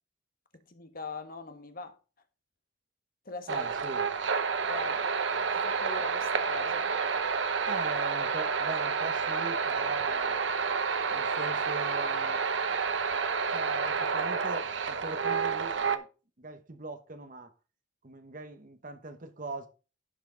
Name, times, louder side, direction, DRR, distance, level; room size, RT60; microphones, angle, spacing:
voice 1, 0.5-2.0 3.2-3.7 4.7-5.1 5.4-6.9, left 3 dB, 45° left, 1.2 m, -42 dB
voice 2, 3.5-4.0 7.7-10.4 11.1-12.4 13.5-16.1 16.4-17.5 18.0-19.7, right 3 dB, 45° right, 1.1 m, -41 dB
sound 1, 3.5-16.0, right 5 dB, 70° right, 0.8 m, -29 dB
11.0 x 5.7 x 3.9 m
head